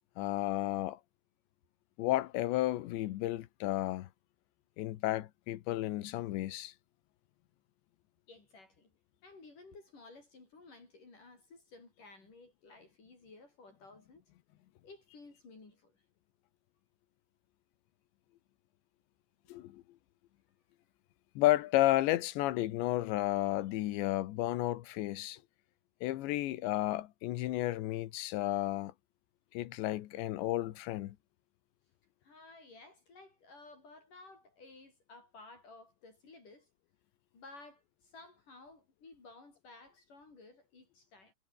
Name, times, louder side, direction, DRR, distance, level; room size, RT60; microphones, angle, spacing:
voice 1, 0.2-1.0 2.0-4.1 4.8-6.7 19.5-19.8 21.4-25.4 26.0-28.9 29.5-31.2, left 15 dB, 80° left, 3.5 m, -32 dB
voice 2, 8.3-8.9 9.2-14.3 14.8-16.0 32.2-36.7 37.3-41.3, left 3 dB, 45° left, 8.0 m, -55 dB
omnidirectional pair, 5.2 m